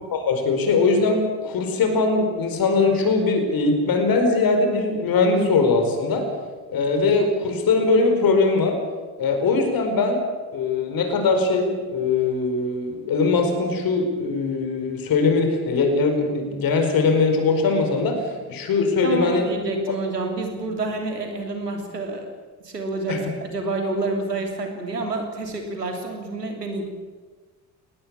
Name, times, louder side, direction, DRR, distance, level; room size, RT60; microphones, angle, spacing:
voice 1, 0.1-6.2 6.7-8.8 9.2-10.2 10.5-19.4 23.1-23.2, left 3 dB, 45° left, 5 dB, 5.0 m, -21 dB
voice 2, 19.0-22.3 22.6-26.9, right 2 dB, 85° right, 3 dB, 3.2 m, -28 dB
20.5 x 19.0 x 8.8 m, 1.4 s
figure-of-eight pair, 55°, 47 cm